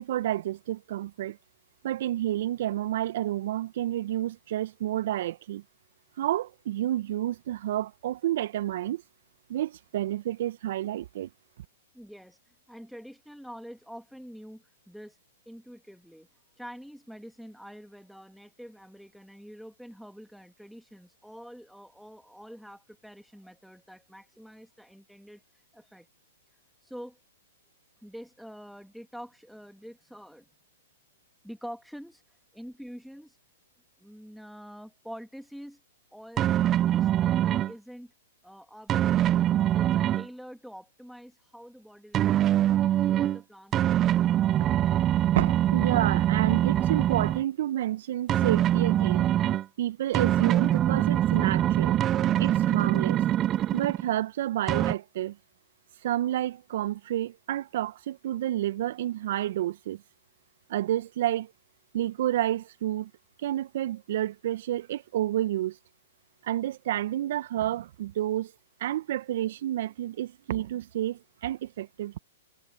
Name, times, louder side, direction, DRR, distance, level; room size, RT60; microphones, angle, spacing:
voice 1, 0.0-1.4 1.8-5.6 6.2-9.0 9.5-11.3 45.3-49.3 49.8-52.0 52.4-53.2 53.7-55.4 56.0-60.0 60.7-61.5 61.9-63.1 63.4-65.8 66.4-68.5 68.8-72.2, right 13 dB, 60° right, 1.4 m, -30 dB
voice 2, 11.9-15.2 15.4-16.3 16.6-26.1 26.8-27.2 28.0-30.5 31.4-33.4 34.0-35.8 36.1-36.6 36.8-38.1 38.4-42.6 42.9-44.9, equal, ahead, 2.9 m, -46 dB
sound 1, 36.4-37.7 38.9-40.3 42.1-43.4 43.7-47.4 48.3-49.6 50.1-54.1 54.7-54.9, right 12 dB, 25° right, 0.6 m, -24 dB
hypercardioid pair, 115°, 0 cm